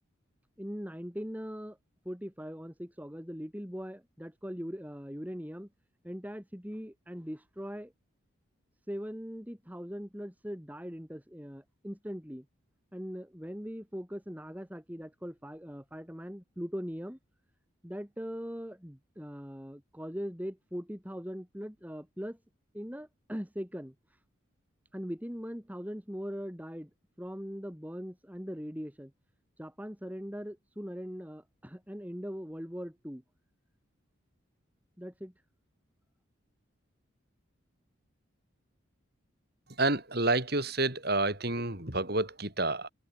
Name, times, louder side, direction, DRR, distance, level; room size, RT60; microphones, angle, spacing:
voice 1, 0.6-1.8 2.0-5.7 6.0-7.9 8.9-12.5 12.9-17.2 17.8-22.4 22.7-23.9 24.9-26.9 27.2-29.1 29.6-33.2 35.0-35.3, equal, 10° right, 2.4 m, -40 dB
voice 2, 39.8-42.9, right 2 dB, 50° right, 5.3 m, -29 dB
head